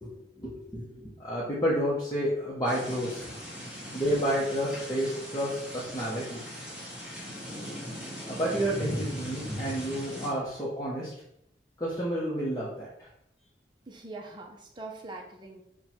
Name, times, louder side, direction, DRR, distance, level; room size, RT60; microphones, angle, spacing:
voice 1, 0.0-3.3 3.9-6.4 8.3-11.1 11.8-13.1, equal, 20° left, -7 dB, 0.7 m, -30 dB
sound 1, 2.7-10.3, equal, 5° right, 0.9 m, -39 dB
voice 2, 13.9-15.6, right 3 dB, 25° right, 1 dB, 0.6 m, -42 dB
4.3 x 2.2 x 4.2 m, 0.75 s
head